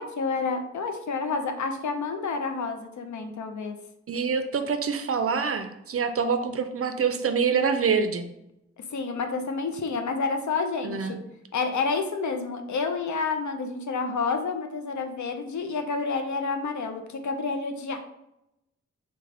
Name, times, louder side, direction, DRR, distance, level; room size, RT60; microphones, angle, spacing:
voice 1, 0.0-3.8 8.9-11.2 11.5-18.0, left 4 dB, 75° left, 6 dB, 0.5 m, -29 dB
voice 2, 4.1-8.3 10.8-11.1, right 6 dB, 50° right, 8 dB, 0.4 m, -26 dB
3.2 x 2.2 x 3.7 m, 0.85 s
cardioid pair, 45°, 29 cm